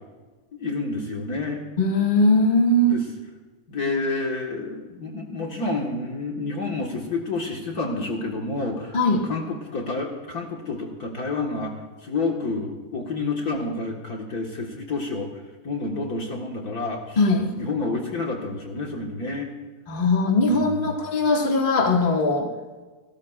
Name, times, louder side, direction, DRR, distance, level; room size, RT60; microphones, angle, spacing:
voice 1, 0.6-1.6 2.9-3.0 3.7-9.0 9.3-11.7 12.0-15.3 15.6-17.2 17.6-19.5 20.4-21.0, left 3 dB, 50° left, -1 dB, 2.0 m, -29 dB
voice 2, 1.8-3.0 8.9-9.3 17.2-17.5 19.9-22.5, left 2 dB, 25° left, 0 dB, 1.9 m, -20 dB
28.5 x 13.5 x 2.5 m, 1.3 s
omnidirectional pair, 2.2 m